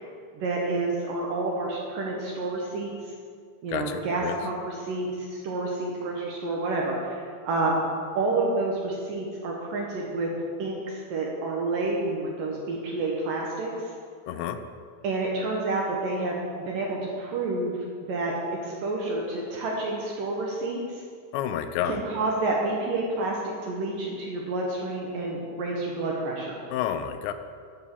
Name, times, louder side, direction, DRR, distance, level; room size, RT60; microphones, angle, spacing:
voice 1, 0.3-2.9 3.6-7.8 8.2-10.3 10.6-13.7 15.0-17.8 18.1-18.3 18.6-21.0 21.9-26.6, right 2 dB, 70° right, -2 dB, 2.2 m, -29 dB
voice 2, 3.7-4.4 14.3-14.6 21.3-22.0 26.7-27.3, left 10 dB, 85° left, 10 dB, 2.9 m, -30 dB
9.9 x 6.3 x 7.0 m, 2.1 s
omnidirectional pair, 5.0 m